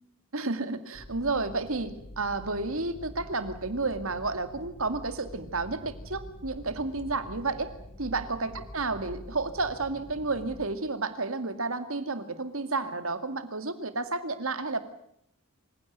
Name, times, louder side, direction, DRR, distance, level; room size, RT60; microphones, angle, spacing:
voice 1, 0.3-7.7 8.0-14.8, right 3 dB, 65° right, 10 dB, 2.3 m, -31 dB
sound 1, 0.9-10.7, left 1 dB, 45° left, 5.1 m, -46 dB
27.0 x 16.5 x 9.4 m, 0.73 s
head